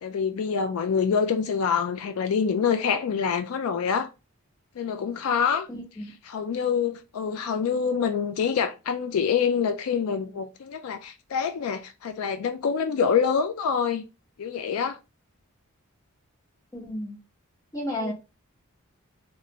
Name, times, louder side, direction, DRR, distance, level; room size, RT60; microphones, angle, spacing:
voice 1, 0.0-4.1 4.8-5.7 6.3-14.0 14.4-15.0 18.0-18.1, left 6 dB, 75° left, 0.4 m, -26 dB
voice 2, 5.7-6.1 16.7-17.2 17.7-18.1, equal, 15° left, 1.0 m, -32 dB
3.0 x 2.5 x 2.7 m
head